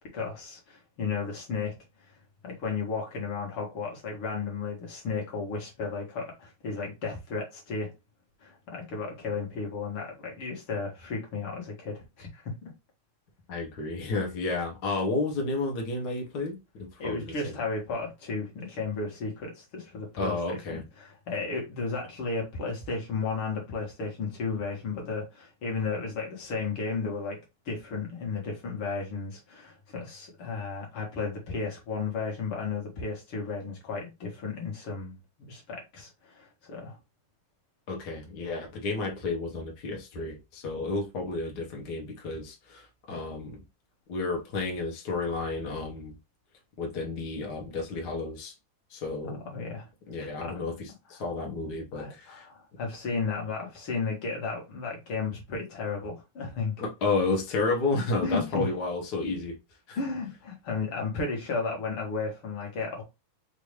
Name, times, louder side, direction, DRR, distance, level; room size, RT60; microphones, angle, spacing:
voice 1, 0.1-1.7 2.4-7.9 8.4-12.5 17.0-27.4 27.7-37.0 49.2-49.9 50.4-50.6 51.1-51.2 51.9-56.7 58.2-58.8 60.0-63.0, left 4 dB, 50° left, 1.8 m, -34 dB
voice 2, 13.5-17.6 20.2-20.8 37.9-43.6 44.1-46.1 46.8-48.5 48.9-49.4 50.1-52.4 56.8-59.5 59.9-60.0, left 3 dB, 80° left, 0.8 m, -31 dB
5.2 x 2.7 x 3.2 m
omnidirectional pair, 3.7 m